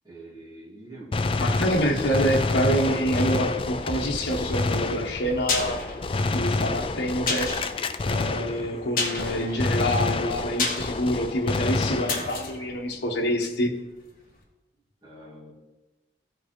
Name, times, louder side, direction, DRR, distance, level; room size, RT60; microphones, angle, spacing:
voice 1, 0.0-1.2 15.0-15.5, right 1 dB, 20° right, -5 dB, 2.7 m, -45 dB
Gunshot gunfire, 1.1-8.9 9.2-12.5, left 3 dB, 30° left, 0.4 m, -28 dB
voice 2, 1.4-5.8 6.3-7.5 8.0-13.7, equal, 75° left, 0 dB, 1.3 m, -26 dB
sound 1, 5.4-13.9 14.2-14.3, left 3 dB, 50° left, 1.9 m, -33 dB
15.0 x 5.2 x 4.5 m, 1.1 s
head